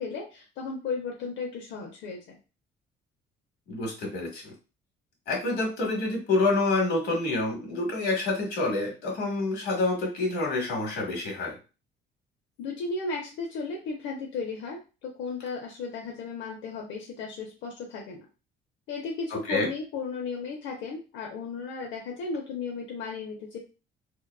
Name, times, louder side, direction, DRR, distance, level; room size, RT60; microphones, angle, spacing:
voice 1, 0.0-2.4 12.6-18.3 18.9-23.6, left 4 dB, 85° left, 0 dB, 0.6 m, -35 dB
voice 2, 3.7-4.5 5.3-11.5 19.5-19.7, left 2 dB, 55° left, -1 dB, 1.1 m, -27 dB
2.7 x 2.2 x 2.3 m, 0.31 s
cardioid pair, 175°, 19 cm